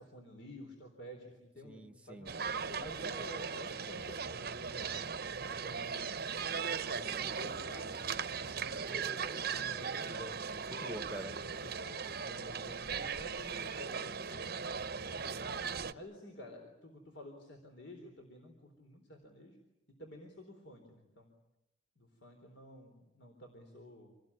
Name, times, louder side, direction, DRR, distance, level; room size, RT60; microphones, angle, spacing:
voice 1, 0.0-4.9 5.4-6.2 6.7-8.9 9.3-9.9 11.6-14.6 15.0-15.4 15.9-19.6 20.0-21.3 22.0-24.1, equal, 65° left, 3 dB, 3.9 m, -51 dB
voice 2, 1.6-2.3 8.9-11.4, right 1 dB, 5° right, 9 dB, 1.2 m, -48 dB
sound 1, 2.3-15.9, right 6 dB, 50° right, 0.9 m, -38 dB
27.5 x 19.5 x 9.8 m, 0.93 s
head